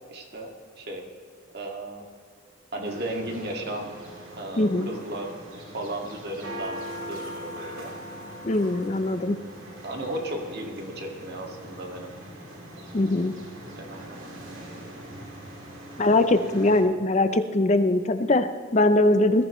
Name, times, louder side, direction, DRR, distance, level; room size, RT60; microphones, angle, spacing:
voice 1, 0.1-1.0 1.5-2.0 2.7-3.9 4.3-5.4 5.7-6.8 7.1-7.9 9.8-12.1 13.8-14.3, right 1 dB, 50° right, 1 dB, 2.0 m, -35 dB
sound 1, 2.8-16.8, right 1 dB, 75° right, 3.1 m, -41 dB
voice 2, 4.6-4.9 8.4-9.4 12.9-13.3 16.0-19.4, left 2 dB, 35° left, 9 dB, 0.5 m, -21 dB
20.5 x 14.0 x 3.1 m, 2.1 s
head